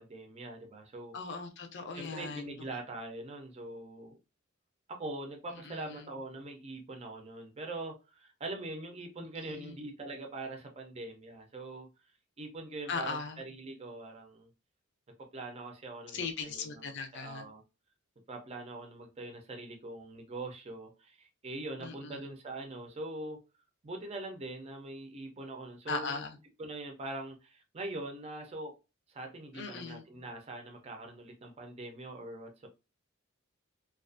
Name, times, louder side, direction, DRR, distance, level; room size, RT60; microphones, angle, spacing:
voice 1, 0.0-1.1 1.9-4.2 4.9-11.9 12.4-14.5 15.3-17.6 18.3-23.4 23.8-26.2 26.6-28.8 29.1-32.7, right 2 dB, 30° right, 0.5 m, -43 dB
voice 2, 1.1-2.6 5.5-6.1 9.5-9.8 12.9-13.4 16.1-17.5 21.8-22.2 25.9-26.4 29.5-30.0, left 4 dB, 55° left, 0.5 m, -39 dB
2.4 x 2.3 x 2.4 m
head